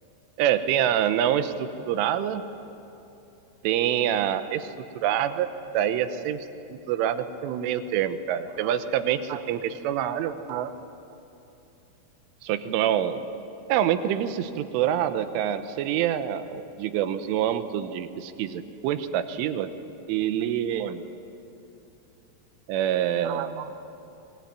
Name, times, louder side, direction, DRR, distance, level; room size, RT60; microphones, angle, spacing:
voice 1, 0.4-2.4 3.6-5.5 5.7-10.7 12.4-13.3 13.7-19.7 20.1-21.0 22.7-23.7, right 10 dB, 80° right, 10 dB, 3.5 m, -26 dB
23.5 x 20.5 x 9.7 m, 2.8 s
omnidirectional pair, 5.7 m